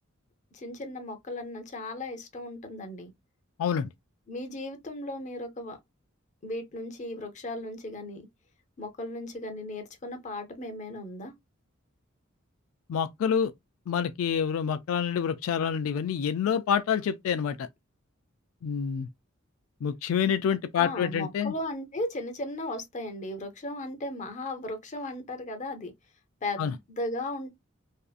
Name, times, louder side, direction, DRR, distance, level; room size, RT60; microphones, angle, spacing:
voice 1, 0.5-3.1 4.3-5.8 6.4-8.3 8.8-11.3 20.7-25.9 26.4-27.5, left 1 dB, 35° left, 0.6 m, -36 dB
voice 2, 12.9-13.5 13.9-17.7 18.6-19.1 19.8-21.5 26.6-26.7, left 7 dB, 85° left, 0.3 m, -27 dB
2.6 x 2.4 x 2.3 m
head